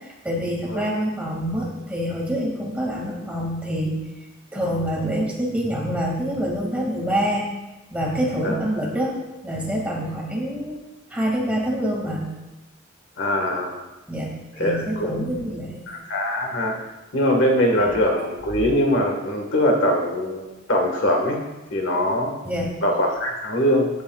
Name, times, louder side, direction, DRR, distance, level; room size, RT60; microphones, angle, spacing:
voice 1, 0.0-4.0 4.5-7.5 7.9-9.2 9.4-10.8 11.1-12.3 14.1-14.3 14.6-15.8 17.7-17.9 22.4-22.7, equal, 5° right, -3 dB, 2.2 m, -26 dB
voice 2, 13.2-13.8 14.6-15.2 15.9-16.8 17.1-21.4 21.7-22.3 22.8-23.9, equal, 65° left, 1 dB, 1.6 m, -22 dB
15.0 x 8.5 x 2.4 m, 1.1 s
head